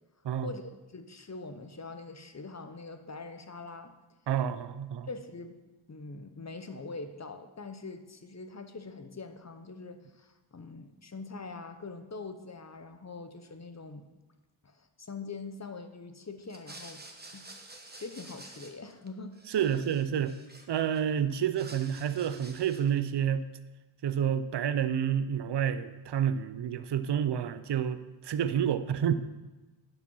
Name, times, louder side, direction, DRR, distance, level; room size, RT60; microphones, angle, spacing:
voice 1, 0.9-3.9 5.1-5.6 5.9-14.0 14.6-17.0 17.3-17.5 17.9-19.9, left 3 dB, 35° left, 8 dB, 0.9 m, -43 dB
voice 2, 4.3-5.1 19.5-20.3 20.7-23.5 24.0-29.1, right 9 dB, 60° right, 12 dB, 0.6 m, -29 dB
sound 1, 16.4-19.1 19.3-21.0 21.4-23.0, right 2 dB, 20° right, 1.2 m, -50 dB
10.5 x 5.1 x 5.5 m, 1.1 s
cardioid pair, 65°, 47 cm